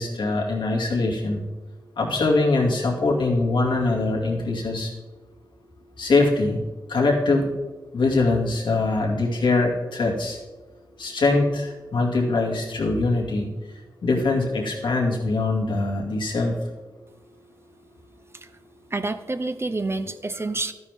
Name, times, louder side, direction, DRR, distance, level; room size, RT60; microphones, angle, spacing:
voice 1, 0.0-1.4 2.0-4.9 6.0-6.6 6.9-7.5 7.9-10.4 11.0-13.5 14.0-16.6, left 3 dB, 90° left, -2 dB, 2.5 m, -22 dB
voice 2, 18.9-20.7, right 2 dB, 30° right, 10 dB, 0.8 m, -28 dB
12.5 x 9.6 x 3.6 m, 1.2 s
wide cardioid pair, 70°, 8 cm